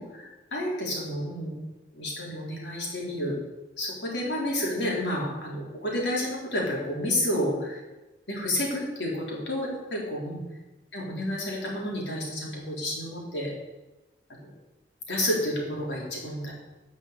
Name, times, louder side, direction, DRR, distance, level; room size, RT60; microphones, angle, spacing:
voice 1, 0.0-1.5 1.9-3.4 3.8-7.8 8.3-10.4 10.9-13.5 14.4-14.5 15.1-16.5, left 1 dB, 85° left, -3 dB, 4.2 m, -30 dB
11.5 x 6.3 x 8.5 m, 1.1 s
head